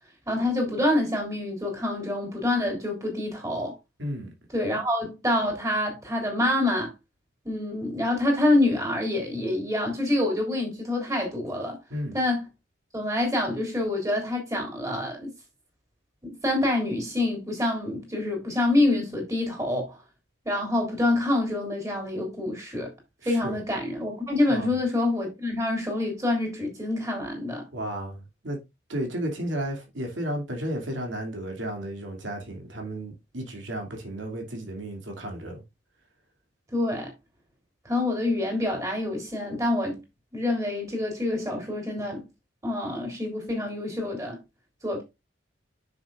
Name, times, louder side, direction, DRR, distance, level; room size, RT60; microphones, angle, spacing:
voice 1, 0.3-3.7 4.5-6.9 7.4-11.8 12.1-12.4 12.9-15.3 16.4-20.0 20.4-22.9 23.2-27.6 36.7-37.1 37.8-40.0 40.3-42.2 42.6-44.4 44.8-45.0, left 1 dB, 15° right, 3.4 m, -26 dB
voice 2, 4.0-4.3 11.9-12.2 23.2-23.6 24.5-24.7 27.7-28.6 28.9-35.6, right 1 dB, 85° right, 2.6 m, -33 dB
9.4 x 6.5 x 2.5 m
head